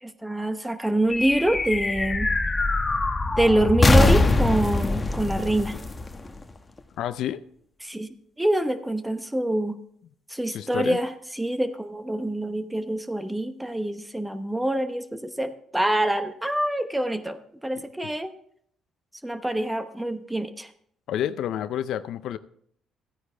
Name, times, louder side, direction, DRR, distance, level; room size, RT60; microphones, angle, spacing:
voice 1, 0.0-2.3 3.4-5.8 7.8-8.1 8.4-9.8 10.3-17.4 17.6-18.3 19.2-20.7, right 1 dB, 5° right, 0.9 m, -25 dB
sound 1, 1.1-6.8, left 2 dB, 20° left, 1.1 m, -23 dB
voice 2, 7.0-7.4 10.5-11.0 21.1-22.4, left 10 dB, 75° left, 0.5 m, -29 dB
14.0 x 9.6 x 3.4 m
cardioid pair, 95°, 0 cm